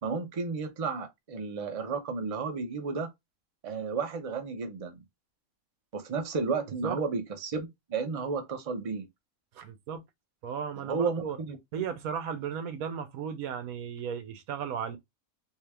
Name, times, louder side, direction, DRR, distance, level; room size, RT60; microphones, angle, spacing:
voice 1, 0.0-3.1 3.6-5.0 5.9-9.1 10.8-11.6, right 4 dB, 35° right, 0.6 m, -32 dB
voice 2, 9.5-10.0 10.4-11.4 11.7-15.0, right 7 dB, 85° right, 1.2 m, -35 dB
3.5 x 2.8 x 3.2 m
omnidirectional pair, 1.5 m